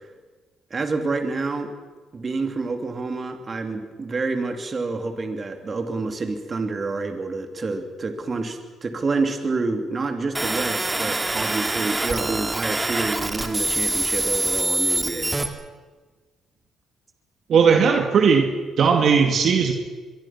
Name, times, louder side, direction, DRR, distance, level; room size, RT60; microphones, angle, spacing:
voice 1, 0.7-1.7 2.1-15.3, right 3 dB, 35° right, 5 dB, 3.2 m, -28 dB
sound 1, 10.3-15.5, right 2 dB, 15° right, 2.3 m, -25 dB
voice 2, 17.5-18.5 18.8-19.7, right 6 dB, 60° right, 3 dB, 2.4 m, -17 dB
24.0 x 22.5 x 6.1 m, 1.3 s
cardioid pair, 90°, 0 cm